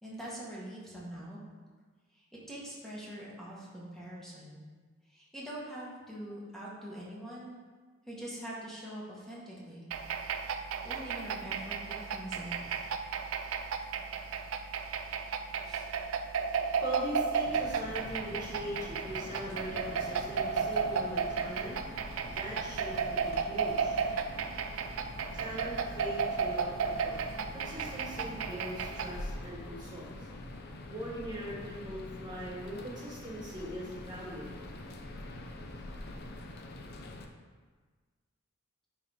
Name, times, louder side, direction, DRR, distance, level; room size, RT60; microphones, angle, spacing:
voice 1, 0.0-1.4 2.1-4.6 5.1-7.5 8.1-9.9 10.5-12.8 15.6-15.9, right 1 dB, ahead, -6 dB, 1.5 m, -44 dB
sound 1, 9.9-29.2, right 6 dB, 90° right, 0.4 m, -34 dB
voice 2, 14.9-24.0 25.3-27.2 27.5-30.3 30.9-34.5, equal, 20° right, -5 dB, 1.6 m, -41 dB
sound 2, 17.4-37.3, left 2 dB, 50° left, 0.6 m, -45 dB
9.7 x 3.7 x 3.6 m, 1.4 s
head